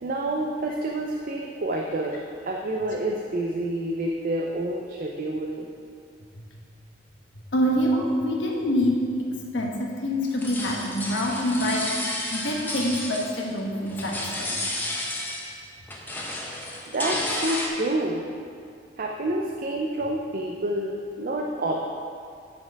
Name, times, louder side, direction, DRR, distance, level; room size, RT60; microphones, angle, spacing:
voice 1, 0.0-2.2 2.4-5.7 16.9-18.2 19.0-21.9, right 1 dB, 50° right, 0 dB, 0.5 m, -28 dB
voice 2, 7.5-9.0 9.5-11.9 12.3-14.6, equal, 85° left, 0 dB, 1.2 m, -25 dB
sound 1, 10.2-13.6 13.9-15.6 15.9-17.7, left 1 dB, 10° left, 0.8 m, -32 dB
9.6 x 4.4 x 4.6 m, 2.3 s
head